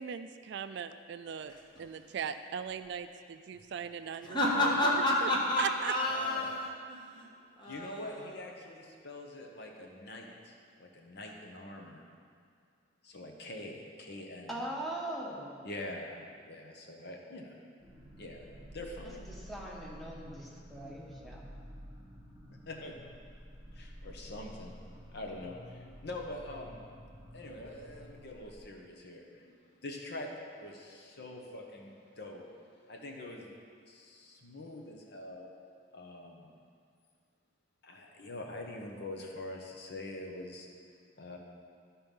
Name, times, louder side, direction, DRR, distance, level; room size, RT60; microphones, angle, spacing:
voice 1, 0.0-1.5 1.8-4.4 4.6-4.9 5.2-5.3 5.6-5.9, right 7 dB, 65° right, 10 dB, 0.3 m, -38 dB
voice 2, 1.5-2.0 4.2-8.4, left 1 dB, 25° left, -4 dB, 1.4 m, -31 dB
voice 3, 6.1-6.5 7.7-12.0 13.0-14.7 15.6-17.6 18.2-18.4 18.7-19.3 22.5-22.9 23.7-24.7 25.1-26.8 27.3-33.6 33.9-35.5 35.9-36.5 37.8-40.7 41.2-41.4, left 1 dB, 60° left, 1 dB, 1.0 m, -44 dB
voice 4, 14.5-15.6 19.3-21.5, right 1 dB, ahead, -4 dB, 1.2 m, -41 dB
sound 1, 17.8-28.6, equal, 15° right, 2.2 m, -51 dB
12.0 x 4.4 x 5.4 m, 2.2 s
head